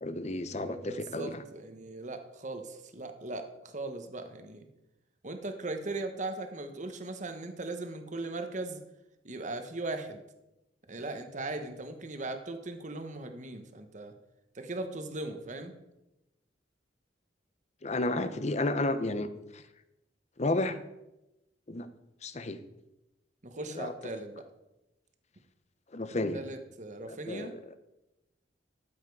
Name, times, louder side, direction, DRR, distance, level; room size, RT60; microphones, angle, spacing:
voice 1, 0.0-1.4 17.8-19.3 19.5-19.6 20.4-20.8 21.7-21.9 22.2-22.6 23.6-23.9 25.9-26.4 27.1-27.8, left 2 dB, 40° left, 11 dB, 0.8 m, -32 dB
voice 2, 0.6-4.7 5.2-8.8 9.2-10.2 10.9-14.1 14.5-15.7 19.0-19.2 23.4-24.4 26.3-27.5, right 2 dB, 40° right, 7 dB, 1.1 m, -39 dB
13.5 x 7.6 x 4.7 m, 0.94 s
head